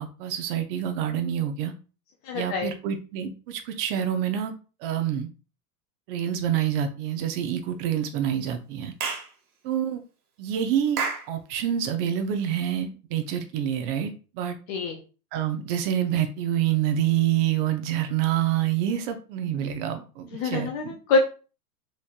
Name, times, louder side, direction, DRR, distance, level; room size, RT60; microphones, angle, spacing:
voice 1, 0.0-1.7 2.3-4.5 4.8-5.3 6.1-8.9 9.6-10.0 10.4-11.0 11.3-14.6 15.3-20.9, right 10 dB, 35° right, 7 dB, 0.6 m, -27 dB
voice 2, 2.2-2.7 14.7-15.0 20.3-21.2, left 4 dB, 25° left, 3 dB, 0.4 m, -25 dB
Clapping / Chirp tweet, 9.0-9.3 11.0-11.3, right 5 dB, 65° right, 1.3 m, -29 dB
4.3 x 3.1 x 2.4 m, 0.35 s
hypercardioid pair, 110°, 49 cm